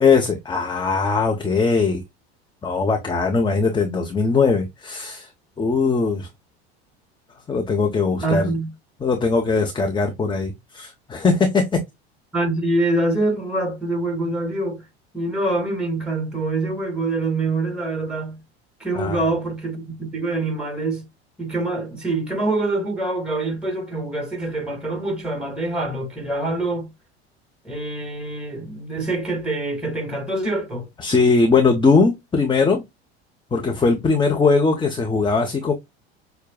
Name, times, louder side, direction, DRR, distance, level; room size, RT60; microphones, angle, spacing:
voice 1, 0.0-2.0 2.6-5.3 5.6-6.3 7.5-8.5 9.0-11.8 19.0-19.2 31.0-32.8 33.5-35.7, left 4 dB, 15° left, 0.9 m, -20 dB
voice 2, 8.2-8.7 12.3-14.8 15.1-18.4 18.8-21.0 21.4-26.9 27.6-30.8, right 2 dB, 5° right, 2.3 m, -25 dB
6.5 x 2.3 x 2.2 m
hypercardioid pair, 85°, 32 cm